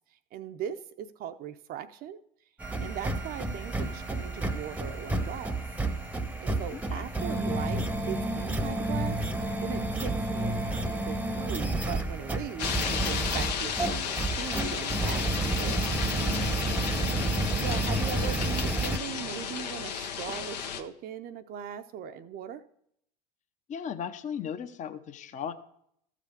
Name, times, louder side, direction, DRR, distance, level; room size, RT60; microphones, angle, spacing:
voice 1, 0.3-2.2 2.8-5.6 6.4-12.7 13.0-15.8 17.3-22.6, right 9 dB, 45° right, 8 dB, 0.6 m, -39 dB
sound 1, 2.6-19.0, right 2 dB, 5° right, 0.8 m, -30 dB
voice 2, 6.7-7.1 16.7-17.0 23.7-25.5, left 8 dB, 35° left, 10 dB, 0.7 m, -37 dB
sound 2, 12.6-20.8, left 7 dB, 80° left, 0.8 m, -33 dB
sound 3, 14.8-19.7, right 2 dB, 85° right, 1.1 m, -42 dB
14.0 x 5.0 x 5.2 m, 0.71 s
hypercardioid pair, 75°, 21 cm